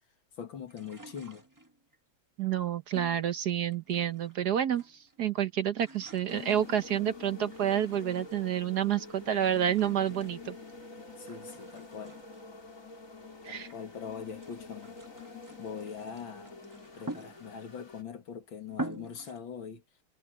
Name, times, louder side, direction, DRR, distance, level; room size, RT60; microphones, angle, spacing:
voice 1, 0.4-1.5 11.2-12.2 13.4-15.0 15.6-16.6 17.0-19.8, left 7 dB, 75° left, 2.7 m, -42 dB
sound 1, 0.7-2.0 2.9-4.4 4.6-5.2 5.5-8.6 9.3-10.9 11.3-13.9 14.3-17.8 18.3-18.4 18.7-19.4, right 2 dB, 10° right, 1.2 m, -46 dB
voice 2, 2.4-4.8 5.2-10.5 13.4-13.7, right 10 dB, 60° right, 1.3 m, -29 dB
sound 2, 6.3-18.0, left 4 dB, 40° left, 4.5 m, -47 dB
omnidirectional pair, 2.2 m